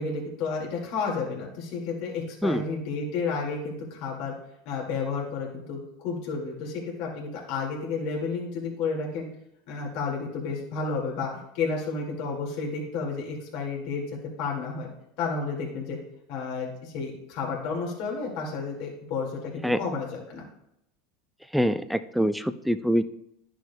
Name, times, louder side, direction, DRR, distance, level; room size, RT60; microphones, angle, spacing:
voice 1, 0.0-4.3 4.7-9.3 9.7-14.0 14.4-14.9 15.2-16.0 16.3-20.5, left 4 dB, 65° left, -1 dB, 2.0 m, -31 dB
voice 2, 21.5-23.0, equal, ahead, 11 dB, 0.4 m, -24 dB
11.0 x 6.1 x 2.2 m, 0.79 s
supercardioid pair, 120°, 0 cm